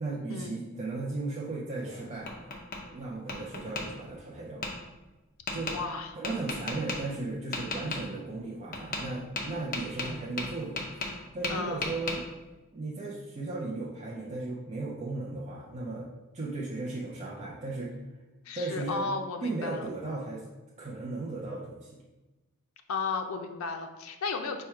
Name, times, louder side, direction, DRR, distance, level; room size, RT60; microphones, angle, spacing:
voice 1, 0.0-2.3 2.9-4.7 5.5-5.7 6.1-12.2 12.7-16.1 16.3-17.9 18.5-19.1 19.4-20.4 20.8-22.0, right 2 dB, 35° right, -4 dB, 0.5 m, -36 dB
Tap, 1.8-2.8 3.3-3.8 4.6-4.7 5.5-5.8 6.2-7.0 7.5-8.0 8.7-9.1 9.4-11.2 11.4-12.2, left 3 dB, 40° left, 0.7 m, -34 dB
voice 2, 5.7-6.1 11.5-12.0 18.5-19.9 22.9-24.6, left 4 dB, 75° left, 5 dB, 0.5 m, -34 dB
4.4 x 2.2 x 4.7 m, 1.1 s
head